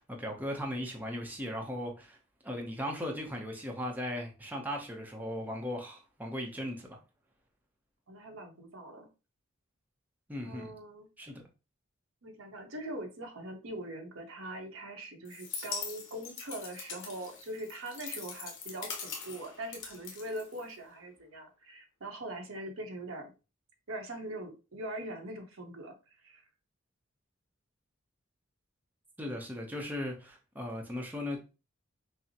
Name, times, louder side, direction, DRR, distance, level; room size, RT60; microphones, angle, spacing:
voice 1, 0.0-2.2 2.4-7.0 10.3-10.7 11.2-11.4 29.2-31.4, left 1 dB, 10° right, 0.7 m, -37 dB
voice 2, 8.1-9.1 10.4-11.1 12.2-23.3 23.9-26.5, right 1 dB, 75° right, 0.9 m, -42 dB
sound 1, 15.2-21.0, left 5 dB, 65° left, 1.0 m, -42 dB
5.7 x 2.0 x 2.8 m
head